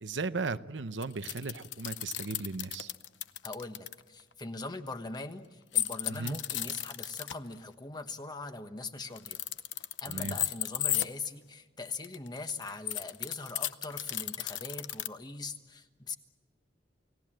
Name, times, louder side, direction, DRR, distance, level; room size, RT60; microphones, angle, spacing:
voice 1, 0.0-2.9 6.1-6.4 10.1-10.4, right 3 dB, 75° right, 12 dB, 0.8 m, -36 dB
sound 1, 1.0-3.9 5.7-7.3 9.1-11.1 11.9-15.1, left 14 dB, 85° left, 0.8 m, -33 dB
voice 2, 3.4-9.4 10.0-16.2, left 3 dB, 25° left, 8 dB, 1.3 m, -41 dB
29.5 x 18.0 x 7.7 m, 1.4 s
head